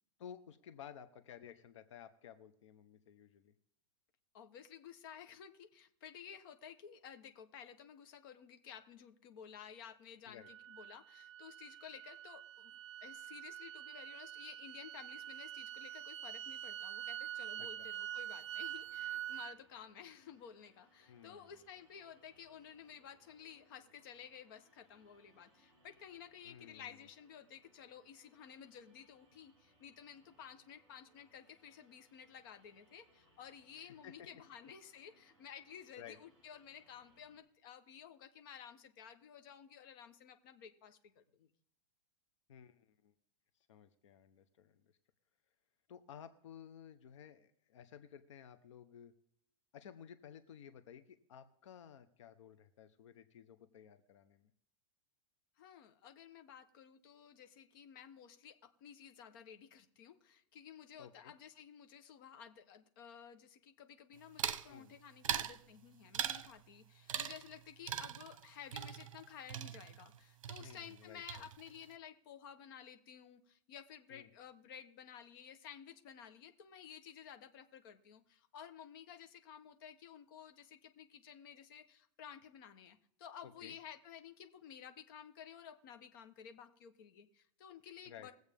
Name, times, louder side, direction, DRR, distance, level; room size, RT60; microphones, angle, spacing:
voice 1, 0.2-3.5 10.2-10.5 17.6-17.9 21.1-21.5 26.4-27.0 33.7-34.1 36.0-36.2 42.5-43.1 43.7-44.9 45.9-49.1 49.7-54.5 61.0-61.3 64.7-64.9 70.6-71.5 74.1-74.3 83.4-83.8 88.1-88.3, left 8 dB, 65° left, 10 dB, 0.9 m, -55 dB
voice 2, 4.3-41.5 55.6-58.5 58.8-88.3, left 8 dB, 40° left, 7 dB, 1.0 m, -54 dB
sound 1, 10.4-19.6, right 11 dB, 60° right, 0.5 m, -46 dB
sound 2, 18.4-37.4, right 1 dB, 30° right, 5.9 m, -72 dB
sound 3, 64.4-64.7 65.2-65.6 66.1-66.5 67.1-67.6 67.9-70.2 70.4-71.0 71.3-71.8, right 9 dB, 75° right, 0.9 m, -40 dB
21.5 x 8.0 x 3.5 m, 0.72 s
supercardioid pair, 170°, 17 cm